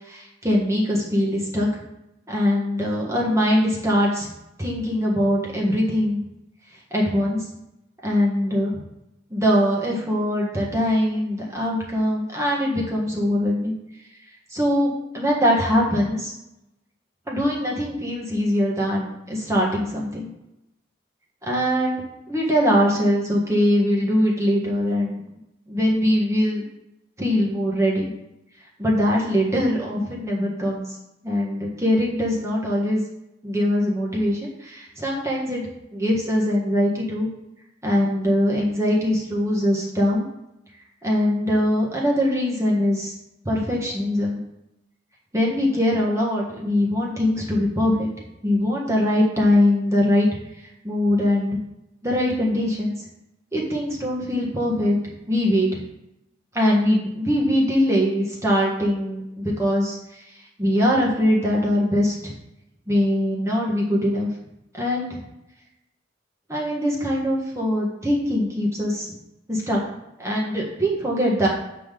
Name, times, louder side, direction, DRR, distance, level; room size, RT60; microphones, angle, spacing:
voice 1, 0.1-1.7 2.3-4.3 4.6-6.2 6.9-7.5 8.0-8.8 9.3-13.7 14.5-16.3 17.3-20.3 21.5-22.0 22.3-25.2 25.7-26.6 27.2-28.1 28.8-30.8 31.2-33.0 33.4-37.3 37.8-40.3 41.0-43.1 43.4-44.4 45.3-48.1 48.4-50.3 50.8-51.6 52.0-52.9 53.5-55.0 55.3-55.8 56.5-60.2 60.6-62.3 62.9-64.3 64.7-65.2 66.5-69.1 69.5-69.8 70.2-71.5, left 1 dB, 15° right, -3 dB, 1.5 m, -22 dB
8.4 x 3.8 x 6.7 m, 0.89 s
head